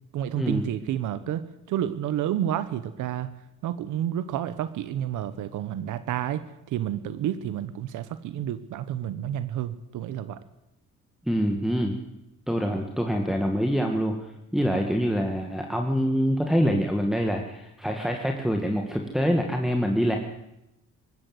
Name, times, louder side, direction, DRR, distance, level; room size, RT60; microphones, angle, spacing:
voice 1, 0.1-3.3 3.6-6.4 6.7-10.4, right 11 dB, 85° right, 14 dB, 1.1 m, -30 dB
voice 2, 11.3-11.9 12.5-20.2, equal, ahead, 2 dB, 2.1 m, -25 dB
20.0 x 16.5 x 7.9 m, 0.89 s
cardioid pair, 90°, 30 cm